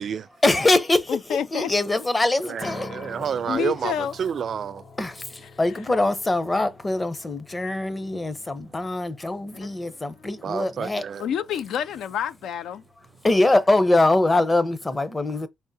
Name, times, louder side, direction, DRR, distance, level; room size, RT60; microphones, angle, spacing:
voice 1, 0.4-2.9 5.0-11.0 13.2-15.5, left 2 dB, 20° left, 0.7 m, -23 dB
voice 2, 1.1-1.7 3.5-4.1 9.6-9.7 10.2-10.3 11.2-12.8, left 8 dB, 80° left, 0.4 m, -28 dB
voice 3, 2.4-4.8 10.4-11.3, right 7 dB, 55° right, 0.3 m, -29 dB
sound 1, 2.6-14.4, left 3 dB, 40° left, 1.0 m, -46 dB
4.7 x 3.5 x 2.7 m
cardioid pair, 100°, 0 cm